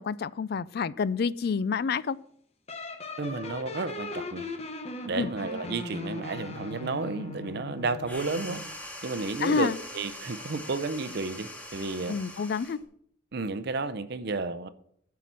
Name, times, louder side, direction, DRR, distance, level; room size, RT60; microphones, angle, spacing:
voice 1, 0.0-2.2 5.1-5.3 9.4-9.8 12.1-12.8, left 5 dB, 55° left, 0.4 m, -28 dB
sound 1, 2.7-8.7, left 2 dB, 35° left, 0.9 m, -39 dB
voice 2, 3.2-4.5 5.0-8.6 9.0-12.2 13.3-14.7, right 3 dB, 55° right, 0.6 m, -32 dB
sound 2, 8.0-12.8, left 1 dB, 10° left, 1.8 m, -42 dB
9.3 x 5.7 x 7.4 m
head